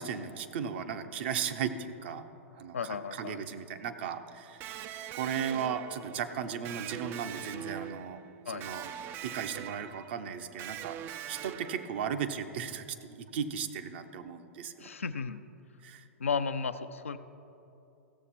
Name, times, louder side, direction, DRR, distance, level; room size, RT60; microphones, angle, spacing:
voice 1, 0.0-2.2 2.6-4.8 5.1-8.2 8.5-8.8 9.2-14.9 15.8-16.1, right 7 dB, 50° right, 8 dB, 0.7 m, -36 dB
voice 2, 2.7-3.4 8.5-8.7 14.8-15.4 16.2-17.2, left 5 dB, 75° left, 10 dB, 0.5 m, -34 dB
Electric guitar, 4.6-12.3, right 10 dB, 30° right, 0.4 m, -43 dB
15.5 x 7.2 x 4.2 m, 2.8 s
figure-of-eight pair, 105°, 7 cm